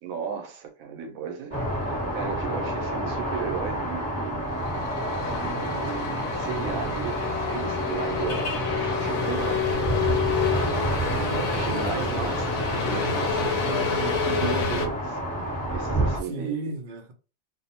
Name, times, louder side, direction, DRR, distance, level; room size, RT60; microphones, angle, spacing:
voice 1, 0.0-4.5 4.9-10.1 11.3-12.5 12.8-16.7, right 7 dB, 80° right, 1.1 m, -35 dB
sound 1, 1.5-16.2, right 1 dB, 5° left, 0.9 m, -29 dB
sound 2, 4.5-14.9, left 6 dB, 80° left, 1.0 m, -29 dB
voice 2, 11.0-12.3 16.2-17.1, right 2 dB, 50° right, 0.6 m, -36 dB
2.7 x 2.0 x 2.8 m
omnidirectional pair, 1.4 m